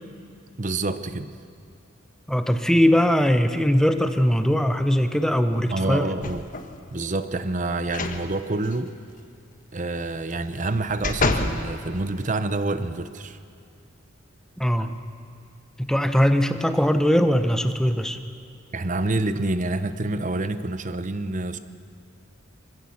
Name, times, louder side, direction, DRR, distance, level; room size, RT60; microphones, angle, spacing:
voice 1, 0.6-1.4 5.7-6.4 6.9-8.9 9.7-13.4 18.7-21.6, right 2 dB, 40° right, 12 dB, 0.8 m, -27 dB
voice 2, 2.3-6.1 14.6-14.9 15.8-18.2, equal, 5° left, 8 dB, 0.8 m, -20 dB
sound 1, 6.2-6.8 7.8-8.2 8.6-8.7 10.3-11.6 12.2-12.3, left 3 dB, 40° left, 1.3 m, -27 dB
24.5 x 16.0 x 7.3 m, 2.6 s
head